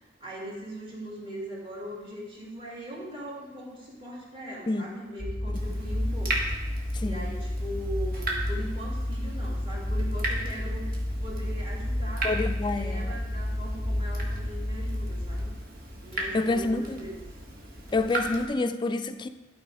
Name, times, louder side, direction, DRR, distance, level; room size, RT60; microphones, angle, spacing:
voice 1, 0.2-6.7 7.0-10.9 11.2-12.3 12.7-15.5 16.0-17.3, equal, 30° right, -5 dB, 2.2 m, -40 dB
sound 1, 5.2-15.5, left 1 dB, 10° right, 1.4 m, -31 dB
Water tap faucet / Drip, 5.5-18.5, right 2 dB, 55° right, 1.5 m, -37 dB
voice 2, 12.2-13.2 16.3-17.1 17.9-19.3, left 2 dB, 25° left, 9 dB, 0.4 m, -28 dB
12.0 x 4.2 x 4.8 m, 1.1 s
head